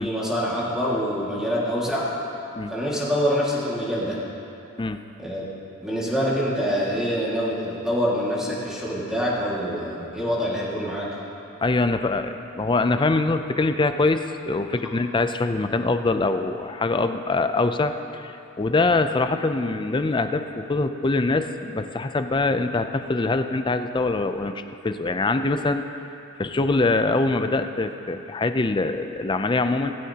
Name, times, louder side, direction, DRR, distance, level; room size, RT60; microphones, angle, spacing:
voice 1, 0.0-2.0 2.7-4.2 5.2-5.5 5.8-11.1, equal, 5° right, -7 dB, 1.9 m, -25 dB
voice 2, 11.6-24.5 24.8-25.8 26.4-30.0, left 3 dB, 20° left, 8 dB, 0.4 m, -23 dB
16.5 x 16.5 x 2.9 m, 2.8 s
head